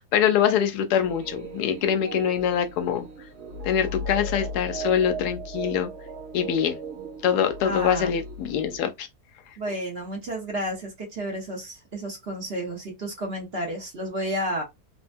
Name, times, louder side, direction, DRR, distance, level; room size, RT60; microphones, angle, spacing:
voice 1, 0.0-3.1 3.6-5.9 6.3-6.8 7.2-9.1, left 9 dB, 80° left, 1.1 m, -24 dB
sound 1, 1.0-8.8, right 1 dB, 80° right, 1.6 m, -36 dB
voice 2, 7.6-8.1 9.6-14.6, right 1 dB, 45° right, 1.0 m, -31 dB
3.4 x 2.1 x 2.5 m
omnidirectional pair, 1.7 m